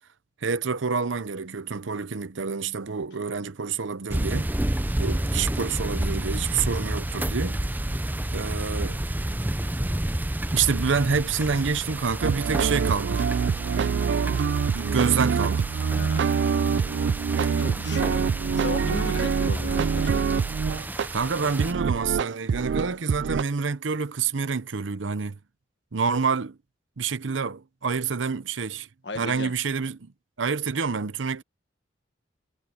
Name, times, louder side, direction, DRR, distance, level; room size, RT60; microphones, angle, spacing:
voice 1, 0.4-4.5 5.0-7.6 8.3-9.0 10.5-13.2 14.7-15.7 21.1-25.4 25.9-26.6 27.0-28.9 29.2-30.1 30.4-31.4, right 5 dB, 85° right, 0.8 m, -27 dB
sound 1, 4.1-21.7, right 1 dB, 10° right, 0.5 m, -30 dB
sound 2, 12.2-21.1 21.6-23.4, right 6 dB, 65° right, 0.3 m, -25 dB
voice 2, 15.9-16.3 17.5-20.2 20.6-20.8 29.0-29.5, left 3 dB, 65° left, 1.7 m, -36 dB
head